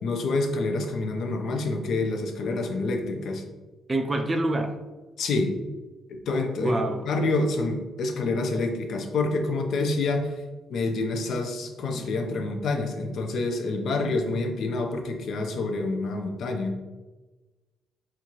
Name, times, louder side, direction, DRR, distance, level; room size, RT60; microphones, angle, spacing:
voice 1, 0.0-3.4 5.2-5.6 6.1-10.3 10.7-16.8, left 2 dB, 70° left, 4 dB, 0.5 m, -27 dB
voice 2, 3.9-4.9 6.6-7.1 11.9-12.1, right 2 dB, 25° right, 6 dB, 0.4 m, -27 dB
4.4 x 2.5 x 2.9 m, 1.2 s
cardioid pair, 90°, 0 cm